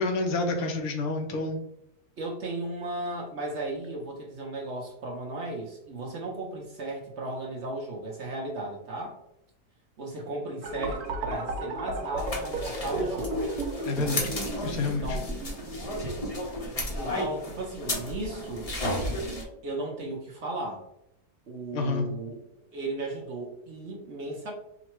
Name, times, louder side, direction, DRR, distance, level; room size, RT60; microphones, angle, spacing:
voice 1, 0.0-1.6 13.9-14.3 14.6-15.2 21.7-22.1, left 3 dB, 70° left, 4 dB, 1.1 m, -28 dB
voice 2, 2.2-9.2 10.0-13.4 15.0-15.3 16.9-18.7 19.6-20.8 21.5-22.4 22.7-24.5, right 2 dB, 55° right, -1 dB, 0.9 m, -35 dB
sound 1, 10.6-16.5, right 1 dB, 70° right, 1.2 m, -34 dB
sound 2, 12.2-19.4, left 1 dB, 30° left, 0.7 m, -33 dB
3.9 x 2.2 x 4.4 m, 0.79 s
omnidirectional pair, 1.7 m